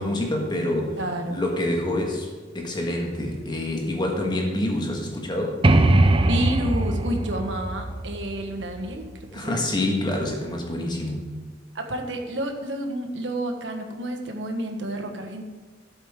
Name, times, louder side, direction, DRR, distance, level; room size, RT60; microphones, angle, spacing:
voice 1, 0.0-1.0 1.3-2.3 2.5-5.6 9.3-11.2, left 1 dB, 25° left, 1 dB, 1.6 m, -26 dB
voice 2, 1.0-1.4 6.2-9.7 11.7-15.5, right 1 dB, 75° right, 4 dB, 1.4 m, -30 dB
sound 1, 5.6-9.3, right 2 dB, 30° right, 0.5 m, -21 dB
12.5 x 8.0 x 3.7 m, 1.4 s
head